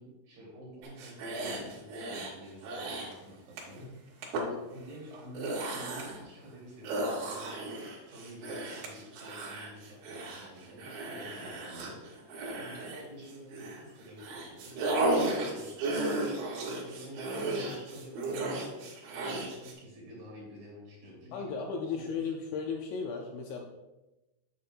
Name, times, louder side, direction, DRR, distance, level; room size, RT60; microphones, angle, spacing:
voice 1, 0.0-3.8 4.7-7.7 8.1-12.0 12.5-16.0 16.6-17.3 17.7-21.5 21.8-22.2, equal, 50° right, -5 dB, 4.0 m, -49 dB
sound 1, 0.8-2.3 2.6-3.1 3.6-3.8 4.2-4.4 5.1-6.2 6.8-13.8 14.2-19.7, right 2 dB, 70° right, 4.2 m, -34 dB
voice 2, 21.3-23.7, left 5 dB, 80° left, 1 dB, 2.7 m, -35 dB
9.2 x 8.7 x 2.2 m, 1.0 s
omnidirectional pair, 5.7 m